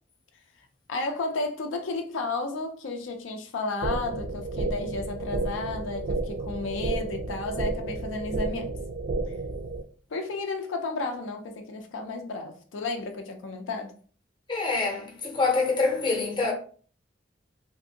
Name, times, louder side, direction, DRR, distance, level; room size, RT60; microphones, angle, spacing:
voice 1, 0.9-8.7 10.1-13.9, left 3 dB, 80° left, 0.4 m, -33 dB
sound 1, 3.8-9.8, right 3 dB, 45° right, 0.4 m, -31 dB
voice 2, 14.5-16.5, left 3 dB, 25° left, 0.6 m, -25 dB
2.6 x 2.5 x 2.7 m
head